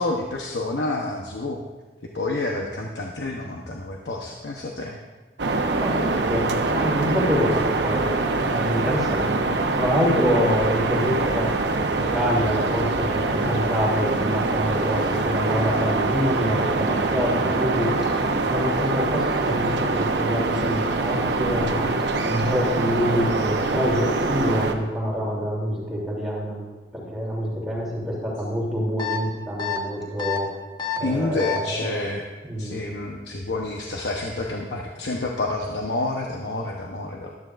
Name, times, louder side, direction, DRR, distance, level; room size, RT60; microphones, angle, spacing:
voice 1, 0.0-1.6 2.1-5.0 5.9-6.0 31.0-32.3 32.6-37.3, left 2 dB, 85° left, 0 dB, 1.0 m, -29 dB
sound 1, 5.4-24.7, right 3 dB, 90° right, 0.9 m, -24 dB
voice 2, 5.7-9.5 9.7-17.9 18.4-22.0 22.2-30.5 31.0-32.1 32.4-32.8, equal, ahead, -7 dB, 3.0 m, -26 dB
sound 2, 29.0-29.2 29.6-29.8 30.2-30.4 30.8-31.0 31.4-31.6, left 10 dB, 25° left, 1.0 m, -27 dB
14.5 x 12.5 x 2.5 m, 1.3 s
head